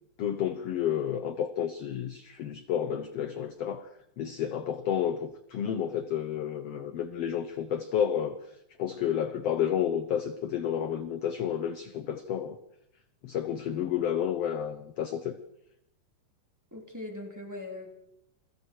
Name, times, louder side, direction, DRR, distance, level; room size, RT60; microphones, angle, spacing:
voice 1, 0.2-3.9 4.2-8.4 8.8-12.6 13.2-15.4, left 9 dB, 65° left, 10 dB, 1.7 m, -31 dB
voice 2, 16.7-17.9, left 2 dB, 5° right, 0 dB, 3.4 m, -40 dB
29.0 x 22.0 x 4.7 m, 0.82 s
omnidirectional pair, 3.8 m